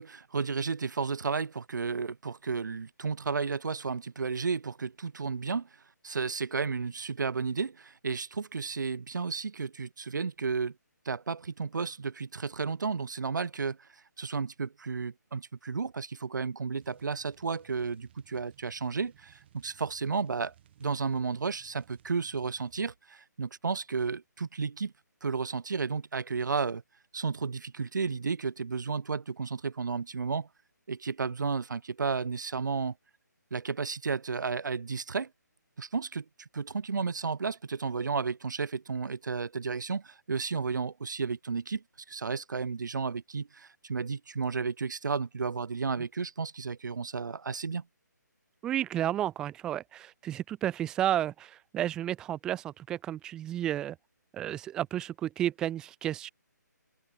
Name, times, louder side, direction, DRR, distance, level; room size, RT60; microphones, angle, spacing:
voice 1, 0.0-5.7 6.0-10.7 11.0-13.9 14.2-20.5 20.8-24.9 25.2-26.8 27.1-30.5 30.9-32.9 33.5-35.3 35.8-47.8, right 5 dB, 75° right, 0.8 m, -33 dB
sound 1, 16.8-22.9, right 11 dB, 35° right, 6.8 m, -61 dB
voice 2, 48.6-54.0 54.3-56.3, right 12 dB, 5° right, 0.3 m, -32 dB
open air
hypercardioid pair, 155°, 10 cm